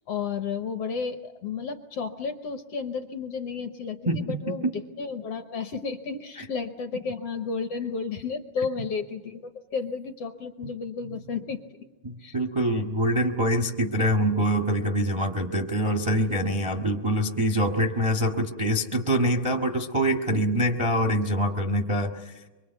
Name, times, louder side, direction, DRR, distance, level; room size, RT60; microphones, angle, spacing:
voice 1, 0.0-11.9 12.2-12.3, left 5 dB, 65° left, 7 dB, 1.6 m, -32 dB
voice 2, 12.0-22.3, equal, 35° right, 4 dB, 0.4 m, -25 dB
24.5 x 24.5 x 8.2 m, 1.1 s
omnidirectional pair, 3.7 m